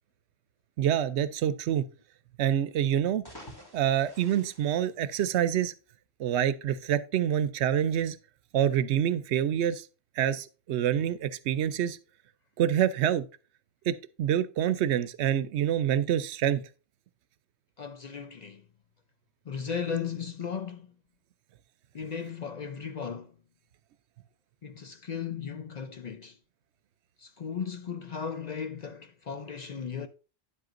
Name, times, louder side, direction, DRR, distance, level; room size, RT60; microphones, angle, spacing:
voice 1, 0.8-1.9 2.4-3.2 3.7-5.7 6.2-8.2 8.5-9.9 10.2-12.0 12.6-13.2 13.9-16.6, right 10 dB, 80° right, 0.8 m, -26 dB
sound 1, 3.1-5.6, equal, 20° left, 2.2 m, -50 dB
voice 2, 17.8-18.7 19.4-20.9 21.9-23.4 24.6-26.4 27.2-30.1, left 6 dB, 50° left, 0.5 m, -36 dB
9.7 x 7.8 x 2.5 m
omnidirectional pair, 1.1 m